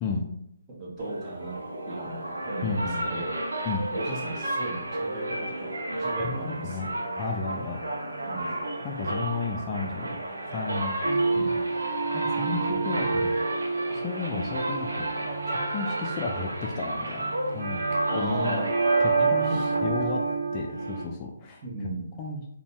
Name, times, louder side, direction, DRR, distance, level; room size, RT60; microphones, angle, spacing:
voice 1, 0.7-1.6 1.9-3.4 3.9-7.0 8.2-8.6 11.3-11.5 12.4-12.7 18.1-18.7 19.2-20.1 21.6-22.1, right 2 dB, 25° right, -3 dB, 0.7 m, -36 dB
sound 1, 1.0-20.4, right 1 dB, 85° right, 0.6 m, -33 dB
voice 2, 2.6-3.2 3.6-3.9 6.2-6.9 7.2-7.8 8.8-10.2 10.5-11.0 11.4-11.6 12.1-13.3 13.9-15.1 15.5-18.6 19.0-19.5 19.8-20.2 20.5-21.6 22.2-22.5, left 4 dB, 25° left, 0 dB, 0.3 m, -33 dB
sound 2, 11.0-21.0, right 4 dB, 65° right, 0.9 m, -29 dB
2.6 x 2.2 x 3.0 m, 0.75 s
hypercardioid pair, 150°, 0 cm